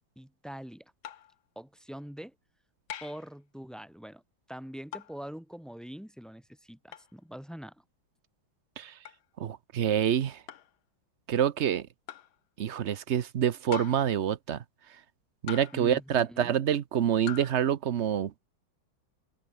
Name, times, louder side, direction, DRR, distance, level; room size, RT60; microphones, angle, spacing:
voice 1, 0.2-0.9 1.6-2.3 3.0-4.2 4.5-7.8 15.7-16.5, equal, ahead, 5.6 m, -43 dB
sound 1, 1.0-1.4 2.9-3.3 4.9-5.2 6.9-7.1 9.1-9.2 10.5-10.8 12.1-12.4 13.7-14.2 15.5-15.9 17.3-17.6, left 10 dB, 85° left, 2.0 m, -42 dB
voice 2, 9.4-10.4 11.3-11.9 12.6-14.6 15.4-18.4, right 9 dB, 60° right, 0.7 m, -27 dB
open air
omnidirectional pair, 2.1 m